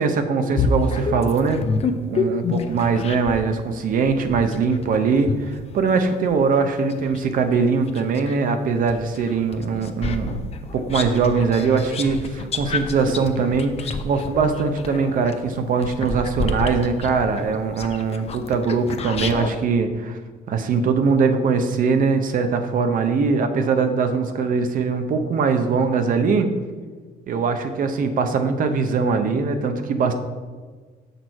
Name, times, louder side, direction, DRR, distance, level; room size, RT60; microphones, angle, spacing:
voice 1, 0.0-1.6 2.1-10.4 10.7-20.2 20.5-26.5 27.3-30.1, right 5 dB, 55° right, 7 dB, 0.8 m, -21 dB
sound 1, 0.5-3.5 4.0-8.4 8.9-19.6, left 4 dB, 40° left, 0.6 m, -28 dB
6.6 x 6.2 x 4.7 m, 1.5 s
cardioid pair, 110°, 17 cm